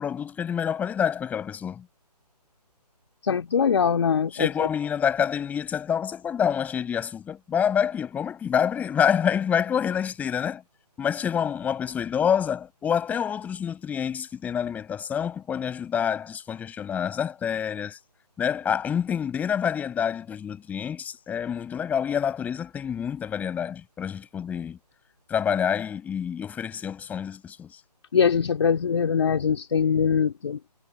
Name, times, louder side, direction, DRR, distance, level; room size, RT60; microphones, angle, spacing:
voice 1, 0.0-1.8 4.3-10.6 11.0-18.0 18.4-24.8 25.3-27.8, left 8 dB, 5° left, 8.0 m, -27 dB
voice 2, 3.2-4.7 28.1-30.6, left 6 dB, 40° left, 2.7 m, -22 dB
figure-of-eight pair, 150°, 21 cm